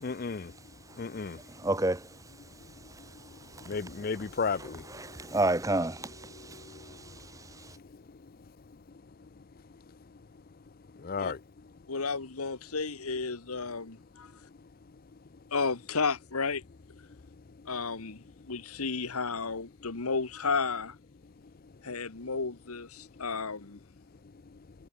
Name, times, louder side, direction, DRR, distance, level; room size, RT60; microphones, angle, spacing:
voice 1, 0.0-0.5 1.0-1.4 3.7-4.8 11.0-11.4, left 5 dB, 40° left, 0.5 m, -33 dB
voice 2, 1.5-2.1 3.6-3.7 4.6-7.3, right 2 dB, 15° right, 1.2 m, -31 dB
voice 3, 11.9-14.3 15.5-16.6 17.7-20.9 21.8-23.8, left 4 dB, 85° left, 1.4 m, -33 dB
head